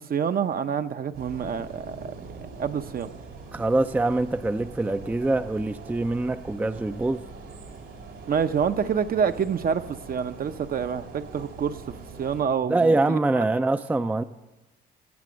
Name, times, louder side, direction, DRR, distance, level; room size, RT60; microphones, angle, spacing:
voice 1, 0.0-2.1 2.6-3.1 8.3-13.4, right 7 dB, 50° right, 10 dB, 0.7 m, -27 dB
sound 1, 1.1-12.4, right 4 dB, 80° right, 3.0 m, -43 dB
voice 2, 3.5-7.2 12.7-14.2, right 2 dB, 10° right, 10 dB, 0.4 m, -24 dB
17.5 x 7.5 x 6.2 m, 1.1 s
cardioid pair, 90°, 20 cm